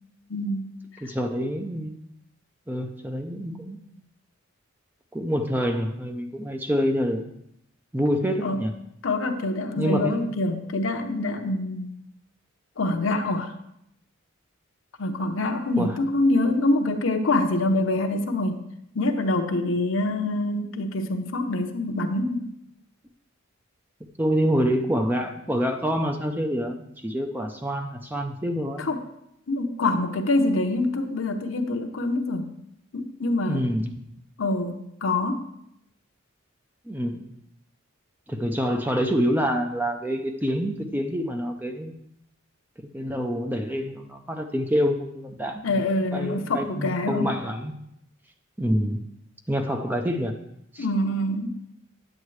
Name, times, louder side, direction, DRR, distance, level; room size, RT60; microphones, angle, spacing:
voice 1, 0.3-0.7 8.4-8.6 9.0-11.9 12.8-13.5 15.0-18.6 18.9-22.5 28.8-29.0 29.5-32.5 32.9-33.6 34.4-35.5 45.6-47.3 48.7-48.8 50.8-51.6, left 2 dB, 70° left, 5 dB, 0.8 m, -25 dB
voice 2, 1.0-2.0 2.7-3.8 5.1-7.3 7.9-8.7 9.8-10.2 15.8-16.0 24.2-28.8 33.4-33.9 36.9-37.3 38.3-41.9 42.8-47.7 48.6-49.0 49.5-50.3 50.7-50.9, equal, 10° right, 5 dB, 0.5 m, -27 dB
9.6 x 7.7 x 3.2 m, 0.78 s
head